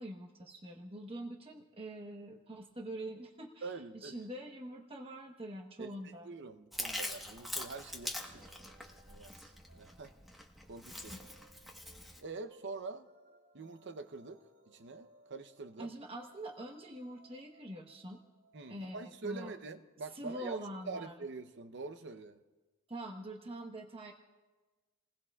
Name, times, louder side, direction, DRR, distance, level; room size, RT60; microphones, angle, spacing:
voice 1, 0.0-6.3 8.8-9.0 11.1-11.2 15.8-18.2 18.7-19.5 20.1-21.2 22.9-24.1, right 1 dB, 25° right, 1 dB, 1.1 m, -44 dB
voice 2, 3.6-4.1 5.8-8.5 9.1-10.1 10.7-11.1 12.2-13.1 13.5-14.4 14.7-15.9 18.5-20.6 20.9-22.4, right 3 dB, 55° right, 10 dB, 0.8 m, -45 dB
Chewing mastication, 6.7-12.2, left 1 dB, ahead, 1.2 m, -43 dB
sound 1, 8.0-18.7, right 2 dB, 75° right, 2.6 m, -65 dB
29.5 x 20.5 x 2.4 m, 1.3 s
head